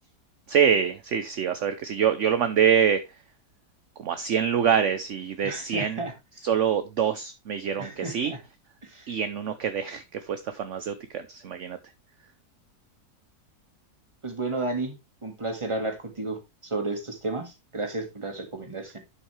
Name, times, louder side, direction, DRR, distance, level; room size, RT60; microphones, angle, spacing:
voice 1, 0.5-3.0 4.0-6.0 6.4-8.3 9.1-11.8, right 8 dB, 55° right, 1.0 m, -25 dB
voice 2, 5.4-6.1 7.8-8.4 8.8-9.1 14.2-14.9 15.2-19.0, right 2 dB, 20° right, 1.9 m, -32 dB
11.5 x 5.8 x 3.3 m
omnidirectional pair, 1.7 m